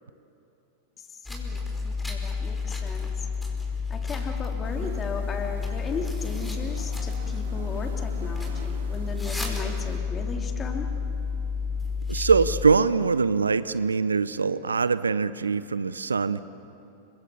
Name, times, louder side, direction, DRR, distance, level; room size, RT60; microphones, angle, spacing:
voice 1, 1.0-3.3 3.9-10.9, left 4 dB, 20° left, 3 dB, 3.3 m, -37 dB
sound 1, 1.3-12.6, left 5 dB, 5° left, 4.9 m, -30 dB
sound 2, 4.6-10.0, right 6 dB, 60° right, 2.9 m, -45 dB
voice 2, 12.1-16.4, right 5 dB, 75° right, 16 dB, 0.7 m, -23 dB
30.0 x 25.5 x 7.3 m, 2.7 s
figure-of-eight pair, 90°, 0 cm